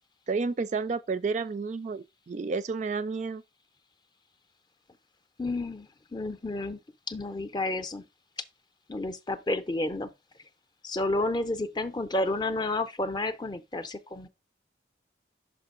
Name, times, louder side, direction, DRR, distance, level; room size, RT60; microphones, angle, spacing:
voice 1, 0.3-3.4, right 4 dB, 40° right, 0.3 m, -31 dB
voice 2, 5.4-6.8 7.1-8.1 8.9-10.1 10.8-14.3, left 2 dB, 25° left, 0.5 m, -31 dB
5.8 x 5.2 x 3.7 m
head